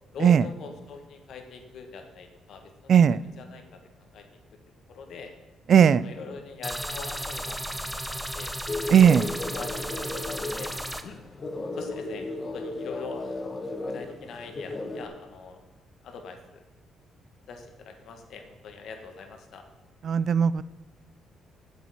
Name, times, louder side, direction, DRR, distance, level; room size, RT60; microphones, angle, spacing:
voice 1, 0.1-4.3 4.9-5.3 6.0-8.5 9.0-10.7 11.0-11.2 11.7-13.2 13.9-15.6 16.0-16.6 17.5-19.6, left 4 dB, 70° left, 5 dB, 1.6 m, -43 dB
voice 2, 5.7-6.0 8.9-9.3 20.0-20.6, right 8 dB, 55° right, 17 dB, 0.3 m, -17 dB
sound 1, 6.6-11.0, equal, 5° right, 0.9 m, -34 dB
sound 2, 8.7-15.1, left 2 dB, 35° left, 1.3 m, -35 dB
8.3 x 7.9 x 5.9 m, 1.2 s
cardioid pair, 90°, 0 cm